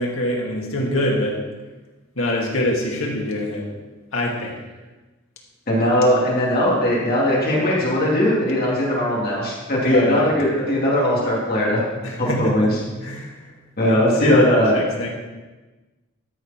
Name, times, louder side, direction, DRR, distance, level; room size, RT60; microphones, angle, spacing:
voice 1, 0.0-1.3 2.2-3.7 4.1-4.5 9.8-10.3 12.0-12.5 13.0-13.3 13.8-15.1, left 1 dB, 85° left, -2 dB, 2.2 m, -24 dB
voice 2, 5.7-11.8 12.2-12.8 13.8-14.8, left 1 dB, 50° left, -5 dB, 2.6 m, -19 dB
12.5 x 5.0 x 5.8 m, 1.2 s
head